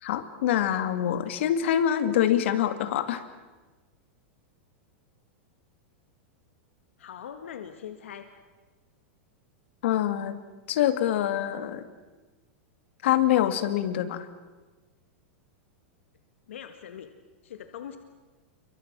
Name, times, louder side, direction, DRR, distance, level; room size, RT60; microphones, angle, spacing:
voice 1, 0.0-3.2 9.8-10.4 10.7-11.9 13.0-14.3, left 11 dB, 70° left, 10 dB, 2.3 m, -25 dB
voice 2, 7.0-8.3 16.5-17.1 17.4-18.0, left 9 dB, 85° left, 7 dB, 1.8 m, -41 dB
27.5 x 24.0 x 6.2 m, 1.3 s
supercardioid pair, 135°, 7 cm